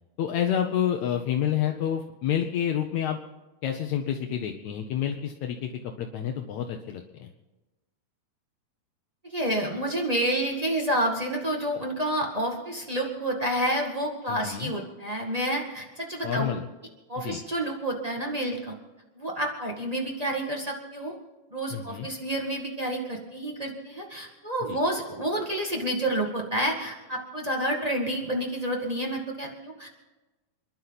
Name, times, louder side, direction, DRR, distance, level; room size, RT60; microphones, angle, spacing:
voice 1, 0.2-3.2 3.6-7.3 14.3-14.7 16.2-16.6 17.2-17.4 21.7-22.1 24.7-24.8, left 9 dB, 75° left, 4 dB, 1.6 m, -29 dB
voice 2, 9.2-16.5 17.1-18.7 19.1-21.1 21.5-29.9, right 1 dB, 45° right, 0 dB, 0.5 m, -29 dB
29.0 x 11.5 x 4.1 m, 1.1 s
omnidirectional pair, 4.5 m